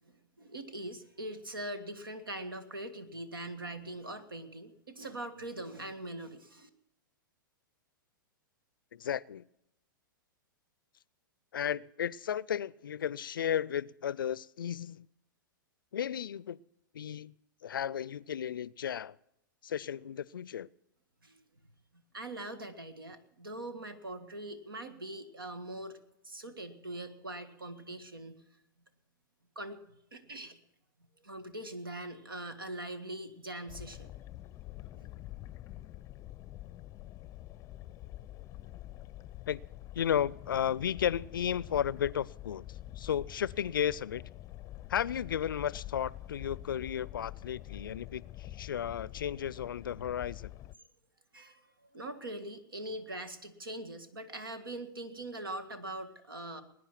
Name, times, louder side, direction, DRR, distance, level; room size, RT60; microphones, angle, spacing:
voice 1, 0.0-6.7 21.2-21.4 22.1-26.0 26.2-28.4 29.6-30.6 31.2-34.1 35.0-35.1 51.3-56.6, right 1 dB, 85° right, 11 dB, 1.8 m, -42 dB
voice 2, 8.9-9.4 11.5-15.1 15.9-16.6 16.9-17.3 17.6-19.1 19.6-20.7 39.5-39.6 39.9-44.2 44.9-50.5, left 9 dB, 75° left, 23 dB, 0.5 m, -34 dB
sound 1, 33.7-50.7, left 15 dB, 30° left, 0.5 m, -46 dB
20.5 x 9.8 x 5.9 m, 0.81 s
hypercardioid pair, 105°, 11 cm